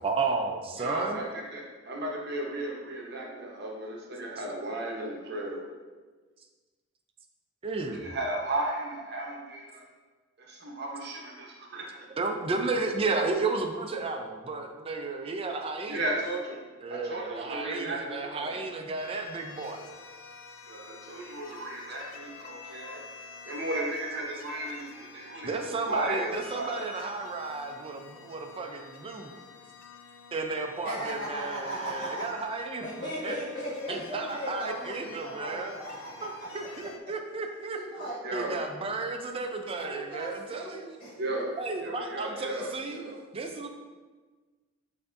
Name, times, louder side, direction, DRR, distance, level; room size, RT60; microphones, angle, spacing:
voice 1, 0.0-1.2 7.6-8.2 12.2-16.1 16.8-19.9 25.4-29.3 30.3-33.4 33.9-35.7 36.2-37.8 38.3-40.9 41.6-43.0 43.3-43.7, right 3 dB, 30° right, 4 dB, 0.4 m, -33 dB
voice 2, 0.8-5.6 7.9-9.9 10.4-12.1 15.9-16.6 16.9-18.6 20.7-23.0 23.4-26.9 38.2-38.6 41.1-43.2, right 1 dB, 55° right, -1 dB, 0.7 m, -35 dB
sound 1, 19.0-37.0, left 5 dB, 85° left, 0.4 m, -49 dB
voice 3, 30.8-32.2 32.8-36.5 37.7-38.2 39.5-41.4, equal, 25° left, -13 dB, 1.4 m, -37 dB
6.6 x 2.6 x 2.5 m, 1.4 s
head